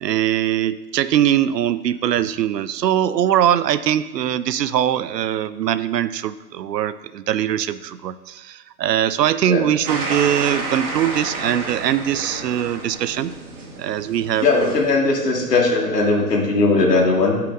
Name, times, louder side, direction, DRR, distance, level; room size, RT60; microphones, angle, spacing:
voice 1, 0.0-13.3 13.8-14.8, right 10 dB, 80° right, 14 dB, 0.6 m, -21 dB
sound 1, 9.9-14.9, right 3 dB, 60° right, 1.6 m, -30 dB
voice 2, 14.4-17.4, left 3 dB, 75° left, -1 dB, 2.0 m, -18 dB
10.5 x 5.7 x 2.5 m, 1.1 s
hypercardioid pair, 175°, 48 cm